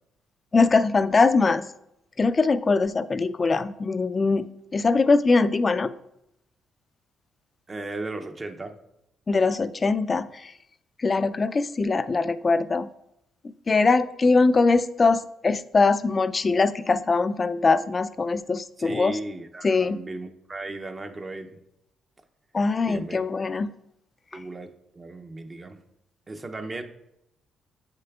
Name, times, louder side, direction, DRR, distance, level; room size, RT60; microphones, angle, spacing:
voice 1, 0.5-1.7 2.2-4.5 4.7-5.9 9.3-10.5 11.0-12.9 13.7-19.2 19.6-20.0 22.5-23.7, left 4 dB, 30° left, 13 dB, 0.3 m, -22 dB
voice 2, 7.7-8.8 18.8-21.6 22.9-23.2 24.3-24.7 24.9-25.8 26.3-26.8, right 2 dB, 30° right, 5 dB, 0.5 m, -36 dB
7.6 x 6.6 x 2.3 m, 0.84 s
cardioid pair, 90°, 0 cm